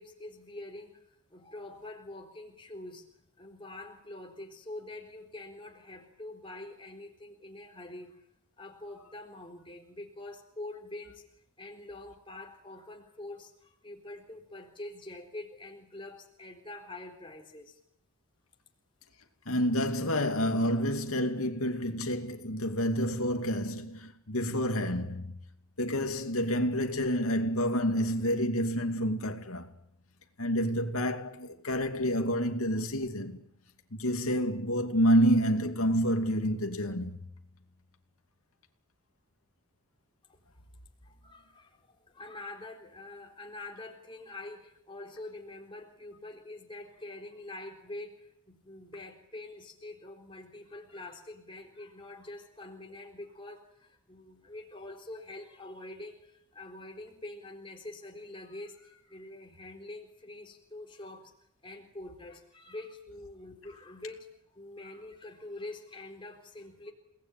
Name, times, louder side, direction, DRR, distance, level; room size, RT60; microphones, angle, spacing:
voice 1, 0.0-8.2 8.6-11.2 11.6-17.8 40.3-40.4 41.0-61.3 61.6-66.9, left 2 dB, 25° left, 3.9 m, -45 dB
voice 2, 19.5-25.4 25.8-29.7 30.4-33.4 33.9-37.2, equal, 80° left, 2.7 m, -28 dB
30.0 x 19.5 x 9.2 m
head